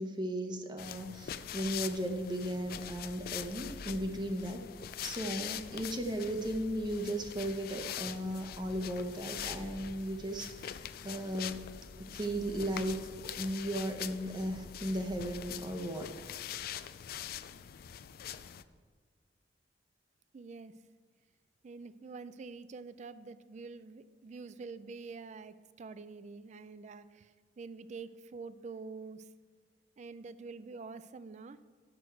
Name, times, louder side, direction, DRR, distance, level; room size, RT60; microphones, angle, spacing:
voice 1, 0.0-4.6 5.0-10.8 11.0-11.7 12.0-13.0 13.4-16.1, right 1 dB, 25° right, 4 dB, 0.9 m, -36 dB
sound 1, 0.8-18.6, left 10 dB, 55° left, 0.3 m, -44 dB
sound 2, 2.5-15.6, left 1 dB, 10° left, 0.9 m, -55 dB
voice 2, 20.3-20.7 21.6-29.3 30.0-31.6, right 4 dB, 40° right, 14 dB, 0.3 m, -46 dB
11.0 x 6.2 x 4.6 m, 1.5 s
head